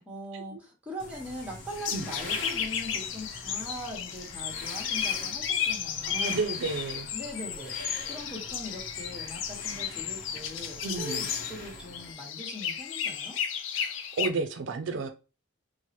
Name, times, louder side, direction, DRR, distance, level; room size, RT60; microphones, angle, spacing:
voice 1, 0.0-6.4 7.1-13.4, left 1 dB, 5° right, -3 dB, 1.2 m, -41 dB
sound 1, 1.0-12.1, left 2 dB, 45° left, 0.8 m, -44 dB
sound 2, 1.7-14.3, left 8 dB, 75° left, 0.4 m, -33 dB
voice 2, 6.1-7.1 10.8-11.3 13.8-15.1, right 3 dB, 65° right, 6 dB, 0.4 m, -32 dB
4.4 x 2.1 x 2.9 m, 0.32 s
head